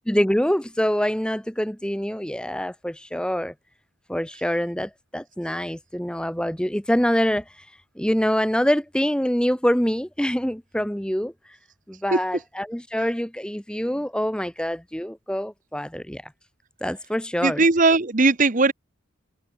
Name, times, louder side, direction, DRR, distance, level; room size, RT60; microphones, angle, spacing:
voice 1, 0.0-3.5 4.1-7.4 8.0-11.3 11.9-16.2 16.8-17.6, equal, 5° left, 1.1 m, -25 dB
voice 2, 17.4-18.7, right 3 dB, 35° right, 1.0 m, -18 dB
head